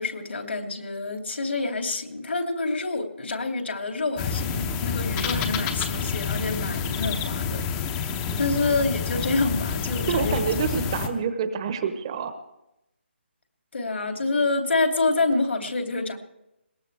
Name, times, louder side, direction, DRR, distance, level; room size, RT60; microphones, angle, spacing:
voice 1, 0.0-8.0 8.4-10.5 13.7-16.2, left 3 dB, 70° left, 4 dB, 2.9 m, -27 dB
sound 1, 4.2-11.1, left 6 dB, 15° left, 0.8 m, -28 dB
voice 2, 10.1-12.3, right 6 dB, 25° right, 10 dB, 1.0 m, -27 dB
21.5 x 18.5 x 3.4 m, 0.89 s
figure-of-eight pair, 165°, 7 cm